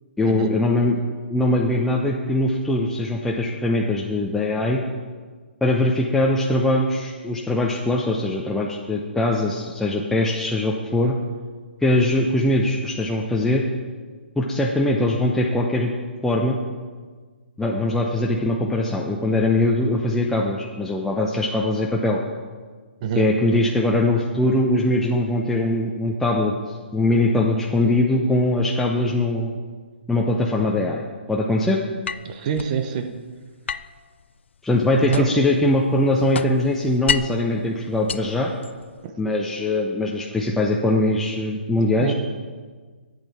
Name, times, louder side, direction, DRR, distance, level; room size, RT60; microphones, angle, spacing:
voice 1, 0.2-1.0 1.3-4.8 5.6-11.2 11.8-13.6 14.4-15.9 16.2-16.6 17.6-22.2 23.1-29.6 30.1-31.8 34.6-38.5 39.2-42.1, left 1 dB, 5° left, -2 dB, 0.7 m, -21 dB
sound 1, 32.1-32.8 33.7-35.5 35.9-37.5 37.9-39.0, left 6 dB, 75° left, 0.4 m, -30 dB
voice 2, 32.2-33.2 35.1-35.3 39.0-39.1 42.0-42.1, right 7 dB, 40° right, 7 dB, 0.8 m, -25 dB
10.5 x 8.4 x 4.3 m, 1.5 s
figure-of-eight pair, 135°, 6 cm